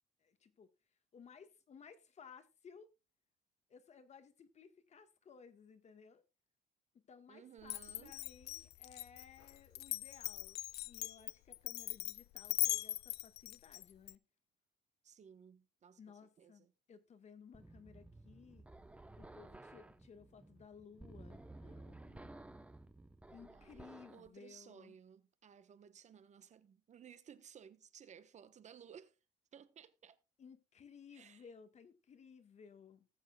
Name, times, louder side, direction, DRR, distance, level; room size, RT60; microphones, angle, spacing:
voice 1, 0.2-0.7 1.1-2.9 3.7-6.2 6.9-14.2 16.0-18.7 19.2-22.7 23.3-25.0 30.4-33.1, left 6 dB, 40° left, 1.7 m, -59 dB
voice 2, 7.3-8.2 15.0-16.0 16.4-16.7 23.5-23.8 24.1-29.2 29.5-30.2 31.1-31.5, right 8 dB, 45° right, 1.2 m, -58 dB
Glass, 7.6-14.1, left 17 dB, 75° left, 0.5 m, -40 dB
sound 1, 17.5-24.3, right 2 dB, 5° right, 1.0 m, -55 dB
19.5 x 7.4 x 2.4 m
cardioid pair, 110°, 17 cm